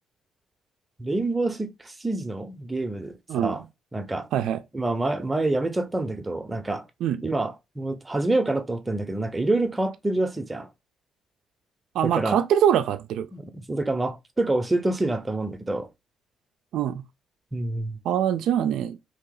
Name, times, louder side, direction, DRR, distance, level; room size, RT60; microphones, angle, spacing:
voice 1, 1.0-3.2 3.4-3.6 3.9-4.3 4.7-6.8 7.2-10.7 12.0-12.4 13.3-15.9 17.5-18.0, right 2 dB, 20° right, 0.7 m, -27 dB
voice 2, 4.3-4.6 7.0-7.2 11.9-13.3 16.7-17.0 18.1-19.0, right 9 dB, 80° right, 0.3 m, -23 dB
2.8 x 2.7 x 4.0 m
cardioid pair, 90°, 0 cm